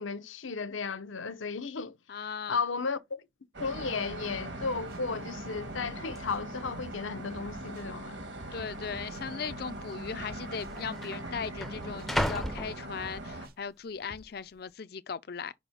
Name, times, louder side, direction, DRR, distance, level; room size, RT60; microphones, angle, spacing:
voice 1, 0.0-2.0 2.5-3.2 3.6-8.3, left 4 dB, 85° left, 0.8 m, -34 dB
voice 2, 2.1-2.6 8.5-15.5, left 6 dB, 50° left, 0.4 m, -38 dB
sound 1, 3.5-13.5, right 1 dB, 65° right, 1.7 m, -41 dB
sound 2, 4.1-4.2 4.5-5.0 5.6-7.0 7.3-7.9 8.4-9.9 10.2-10.7 11.2-12.7 13.0-13.5 14.1-14.2, right 2 dB, 50° right, 0.6 m, -50 dB
sound 3, 4.7-4.8 5.0-5.4 6.1-6.2 7.0-7.5 7.8-7.9 8.8-8.9 9.9-10.0 10.2-13.5 14.0-14.4, equal, ahead, 0.5 m, -36 dB
5.3 x 4.1 x 5.7 m
head